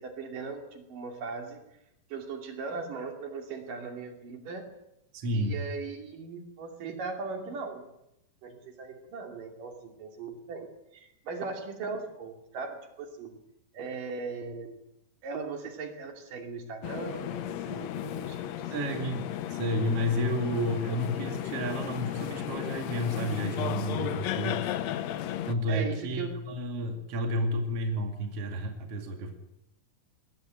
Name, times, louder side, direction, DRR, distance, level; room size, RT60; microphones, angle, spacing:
voice 1, 0.0-1.6 2.1-4.7 5.3-7.9 8.4-13.4 13.7-14.7 15.2-19.1 25.7-26.4, right 4 dB, 60° right, 4 dB, 4.2 m, -39 dB
voice 2, 5.1-5.6 18.7-24.8 25.5-29.3, equal, 40° right, 3 dB, 3.0 m, -31 dB
sound 1, 16.8-25.5, left 11 dB, 85° left, 1.5 m, -34 dB
21.0 x 17.5 x 9.1 m, 0.82 s
omnidirectional pair, 4.5 m